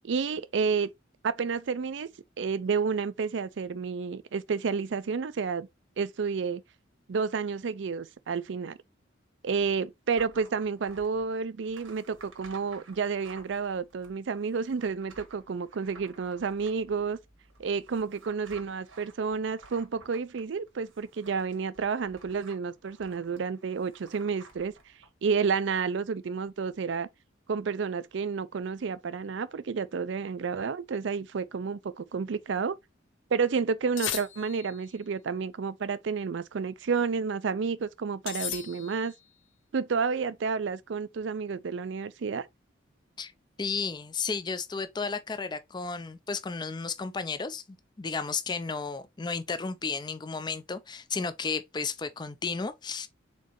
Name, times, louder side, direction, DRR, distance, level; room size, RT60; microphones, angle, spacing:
voice 1, 0.0-0.9 1.2-2.1 2.4-5.7 6.0-6.6 7.1-8.8 9.4-17.2 17.6-24.7 25.2-27.1 27.5-32.8 33.3-39.1 39.7-42.5, right 5 dB, 65° right, 0.4 m, -30 dB
sound 1, 10.2-25.1, right 4 dB, 85° right, 1.5 m, -54 dB
sound 2, 34.0-34.9 38.3-39.2, left 11 dB, 65° left, 0.6 m, -36 dB
voice 2, 43.6-53.1, left 5 dB, 20° left, 0.4 m, -33 dB
4.3 x 4.0 x 3.0 m
head